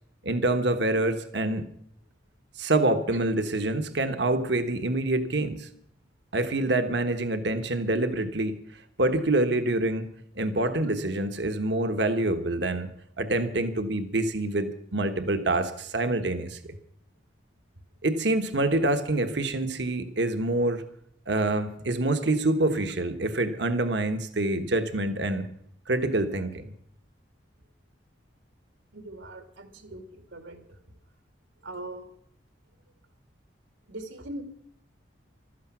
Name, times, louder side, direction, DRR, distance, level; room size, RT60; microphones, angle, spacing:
voice 1, 0.2-1.7 2.6-5.7 6.3-8.6 9.0-10.1 10.3-12.9 13.2-16.8 18.0-20.8 21.3-25.5 25.9-26.7, right 2 dB, 65° right, 8 dB, 1.4 m, -26 dB
voice 2, 28.9-30.8 31.6-32.1 33.9-34.4, right 1 dB, 85° right, 7 dB, 2.6 m, -41 dB
15.0 x 13.0 x 6.2 m, 0.67 s
head